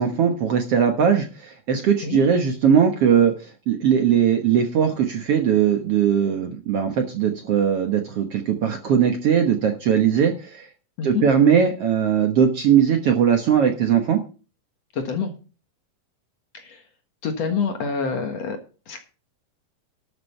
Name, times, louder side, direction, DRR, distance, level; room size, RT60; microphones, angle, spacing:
voice 1, 0.0-10.7 11.0-14.2, right 8 dB, 60° right, 5 dB, 1.8 m, -19 dB
voice 2, 14.9-15.3 16.5-16.8 17.2-18.6 18.9-19.0, left 5 dB, 55° left, 5 dB, 2.3 m, -26 dB
12.5 x 6.9 x 5.6 m, 0.35 s
omnidirectional pair, 3.9 m